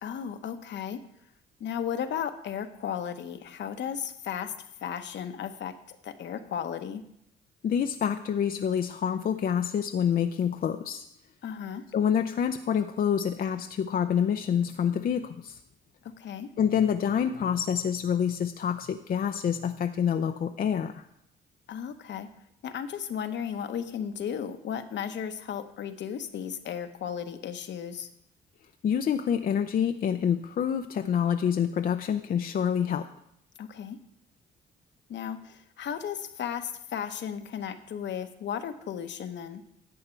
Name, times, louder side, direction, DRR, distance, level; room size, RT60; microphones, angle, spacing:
voice 1, 0.0-1.0 1.6-4.5 4.8-7.0 11.4-11.8 16.2-16.5 21.7-22.3 22.6-28.1 33.6-34.0 35.1-39.6, left 8 dB, 65° left, 9 dB, 0.9 m, -35 dB
voice 2, 7.6-11.0 11.9-15.6 16.6-21.0 28.8-33.1, left 8 dB, 45° left, 7 dB, 0.5 m, -27 dB
11.0 x 7.8 x 4.5 m, 0.75 s
cardioid pair, 90°, 20 cm